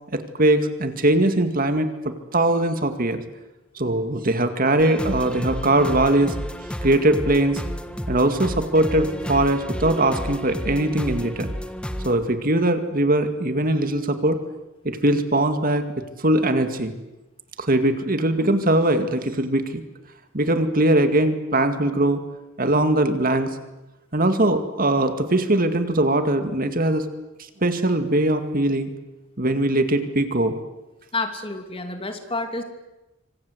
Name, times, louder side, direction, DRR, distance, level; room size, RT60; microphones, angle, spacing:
voice 1, 0.1-1.9 2.3-3.2 3.8-6.4 6.8-7.6 8.1-11.5 12.0-14.4 14.8-15.9 16.2-16.9 17.6-19.8 20.3-22.2 22.6-23.6 24.1-27.1 27.6-28.9 29.4-30.6, right 1 dB, 45° right, 8 dB, 2.1 m, -21 dB
sound 1, 4.8-12.1, equal, 5° left, 1.6 m, -31 dB
voice 2, 31.1-32.6, left 2 dB, 25° left, 6 dB, 2.9 m, -29 dB
26.5 x 25.5 x 8.0 m, 1.0 s
head